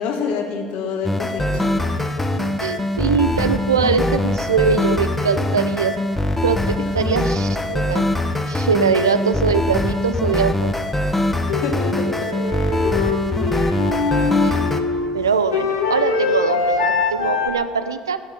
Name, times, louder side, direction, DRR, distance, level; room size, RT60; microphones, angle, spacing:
voice 1, 0.0-1.7 6.8-6.9 9.7-9.8 11.6-12.5 13.9-14.1, left 5 dB, 65° left, 3 dB, 1.8 m, -28 dB
sound 1, 1.0-14.8, left 1 dB, 10° left, 1.1 m, -22 dB
voice 2, 2.6-5.9 6.4-8.0 8.5-10.7 14.4-14.6 15.1-18.2, right 5 dB, 90° right, 12 dB, 0.5 m, -22 dB
sound 2, 11.5-17.5, left 4 dB, 80° left, 1.4 m, -22 dB
11.5 x 7.6 x 9.3 m, 2.1 s
hypercardioid pair, 65°, 2 cm